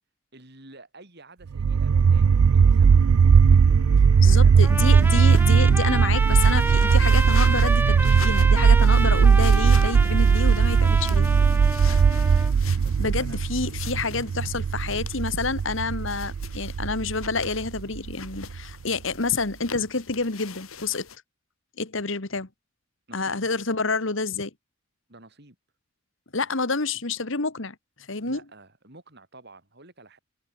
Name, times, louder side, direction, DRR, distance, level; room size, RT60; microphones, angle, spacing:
voice 1, 0.3-3.0 4.2-5.4 12.2-12.6 12.8-13.8 23.1-23.4 25.1-25.6 28.2-30.2, right 2 dB, 50° right, 5.3 m, -50 dB
sound 1, 1.5-18.6, right 6 dB, 85° right, 0.4 m, -19 dB
voice 2, 4.2-11.3 13.0-21.1 21.8-22.5 23.1-24.5 26.3-27.8 28.1-28.4, left 4 dB, 60° left, 1.7 m, -28 dB
sound 2, 4.6-21.2, left 6 dB, 80° left, 4.1 m, -43 dB
Trumpet, 4.6-12.5, right 2 dB, 10° right, 0.9 m, -31 dB
open air
head